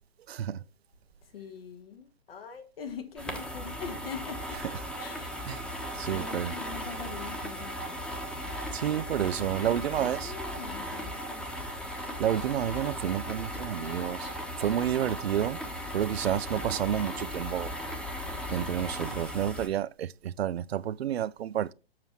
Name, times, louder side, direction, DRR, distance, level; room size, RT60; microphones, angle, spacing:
voice 1, 0.3-0.6 5.5-5.6 6.0-6.5 8.7-10.3 12.2-14.3 14.6-15.6 15.9-17.7 18.5-21.7, right 10 dB, 75° right, 0.5 m, -30 dB
voice 2, 1.2-4.6 5.0-5.6 6.1-8.0 9.2-11.4, left 6 dB, 65° left, 1.5 m, -43 dB
sound 1, 3.2-19.7, equal, 5° left, 1.1 m, -37 dB
7.5 x 5.8 x 4.5 m
hypercardioid pair, 125°, 31 cm